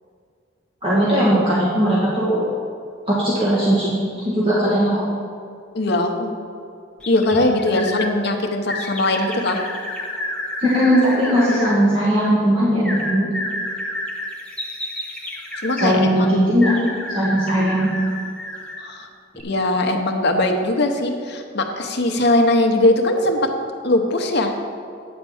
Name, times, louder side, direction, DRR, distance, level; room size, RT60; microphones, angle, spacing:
voice 1, 0.8-2.4 3.1-3.9 4.2-5.0 10.6-13.3 15.8-17.9, equal, 25° right, -9 dB, 1.5 m, -18 dB
voice 2, 5.7-6.4 7.1-9.6 15.6-16.0 18.8-19.1 19.4-23.5 23.8-24.5, left 1 dB, 55° left, 3 dB, 0.9 m, -20 dB
sound 1, 7.0-8.1 8.7-11.7 12.8-15.9 16.6-18.9 19.3-19.4, left 1 dB, 5° left, 1.1 m, -30 dB
9.5 x 4.6 x 7.1 m, 2.3 s
head